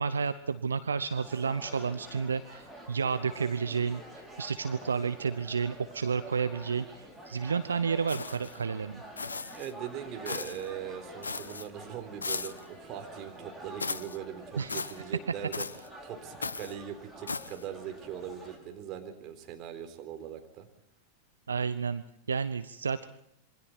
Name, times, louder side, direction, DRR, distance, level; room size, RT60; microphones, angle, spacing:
voice 1, 0.0-4.0 4.4-9.0 14.6-14.8 21.5-22.0 22.3-23.1, right 6 dB, 70° right, 13 dB, 0.9 m, -31 dB
sound 1, 1.1-18.6, right 1 dB, 10° right, 6.5 m, -48 dB
sound 2, 8.1-8.6 9.2-9.7 10.3-10.7 11.2-11.7 12.2-12.7 13.8-14.2 14.7-15.0 15.5-15.9 16.4-16.7 17.3-17.6, left 4 dB, 75° left, 0.8 m, -37 dB
voice 2, 9.5-15.6 16.0-20.7, right 9 dB, 35° right, 6 dB, 3.9 m, -41 dB
27.5 x 23.5 x 4.5 m, 0.76 s
figure-of-eight pair, 90°, 0 cm